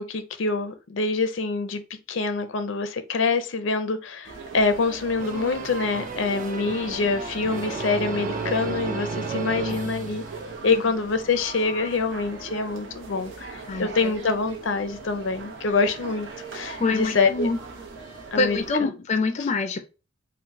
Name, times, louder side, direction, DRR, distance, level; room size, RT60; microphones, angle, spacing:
voice 1, 0.0-1.8 2.1-10.2 10.6-16.3 16.5-17.5 18.3-18.6, left 4 dB, 90° left, 0.6 m, -25 dB
sound 1, 4.2-18.7, right 4 dB, 80° right, 0.9 m, -40 dB
sound 2, 5.2-10.8, right 4 dB, 45° right, 0.5 m, -33 dB
voice 2, 13.7-14.1 16.8-17.6 18.4-19.8, left 3 dB, 35° left, 0.4 m, -25 dB
4.5 x 2.2 x 3.6 m
head